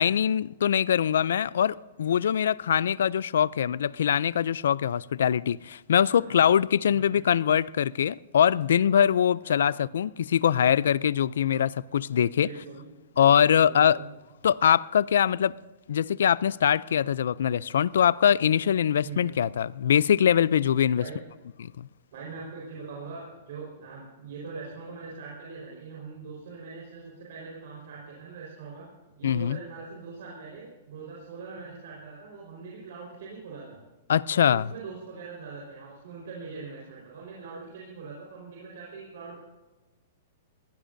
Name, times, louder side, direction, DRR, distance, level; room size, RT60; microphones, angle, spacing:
voice 1, 0.0-12.5 13.2-14.0 14.4-15.5 15.9-21.0 21.6-21.9 29.2-29.6 34.1-34.7, left 9 dB, 80° left, 0.4 m, -23 dB
voice 2, 6.0-6.4 6.9-7.2 9.4-9.8 12.4-14.1 19.0-19.3 21.0-21.1 22.1-28.9 29.2-33.8 34.3-39.4, right 4 dB, 55° right, 4.6 m, -42 dB
21.5 x 16.5 x 2.7 m
supercardioid pair, 180°, 0 cm